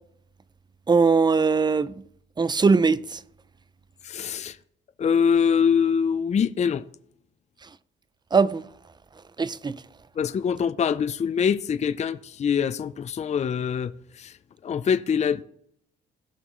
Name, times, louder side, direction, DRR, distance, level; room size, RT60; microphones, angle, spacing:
voice 1, 0.9-1.9 2.4-3.2 8.3-8.6 9.4-9.8, right 4 dB, 20° right, 0.5 m, -20 dB
voice 2, 4.0-4.6 5.0-6.8 10.2-13.9 14.2-14.3 14.6-15.4, left 7 dB, 35° left, 0.5 m, -24 dB
17.5 x 5.9 x 3.1 m
cardioid pair, 90°, 20 cm